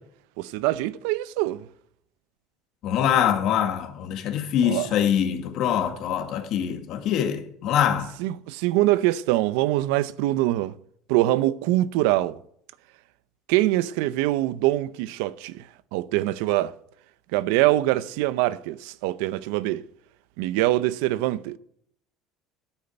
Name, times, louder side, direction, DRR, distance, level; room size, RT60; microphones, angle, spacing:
voice 1, 0.4-1.6 4.6-4.9 8.2-10.7 11.1-12.4 13.5-15.6 15.9-16.7 17.3-19.8 20.4-21.6, right 16 dB, 85° right, 0.7 m, -24 dB
voice 2, 2.8-8.1, left 9 dB, 50° left, 1.7 m, -24 dB
10.0 x 8.7 x 9.1 m
cardioid pair, 170°, 0 cm